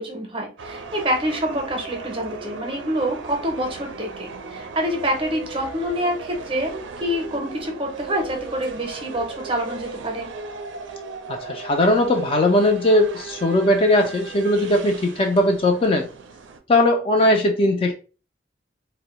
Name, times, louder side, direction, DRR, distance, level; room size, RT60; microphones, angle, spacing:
voice 1, 0.0-10.3, equal, 30° right, 2 dB, 0.6 m, -26 dB
sound 1, 0.6-16.6, right 4 dB, 85° right, 0.4 m, -37 dB
voice 2, 11.3-16.1 16.7-17.9, left 1 dB, 30° left, 3 dB, 0.3 m, -19 dB
2.6 x 2.0 x 2.9 m, 0.35 s
head